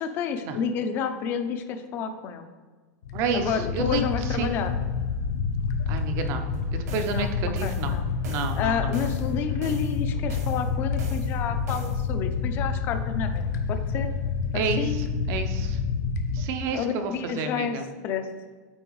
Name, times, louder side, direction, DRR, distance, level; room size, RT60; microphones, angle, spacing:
voice 1, 0.0-2.5 3.3-4.7 7.1-7.3 7.6-8.0 8.6-14.1 14.5-15.1 16.7-17.8 18.0-18.3, left 7 dB, 25° left, 7 dB, 0.4 m, -30 dB
sound 1, 3.0-16.5, left 5 dB, 90° left, 0.6 m, -28 dB
voice 2, 3.1-4.0 4.3-4.5 5.9-6.4 6.7-7.9 8.3-8.9 14.5-15.8 16.3-17.9, right 5 dB, 30° right, 6 dB, 0.5 m, -30 dB
sound 2, 6.5-12.0, right 3 dB, 80° right, 1.6 m, -40 dB
8.6 x 3.8 x 3.1 m, 1.4 s
supercardioid pair, 175°, 9 cm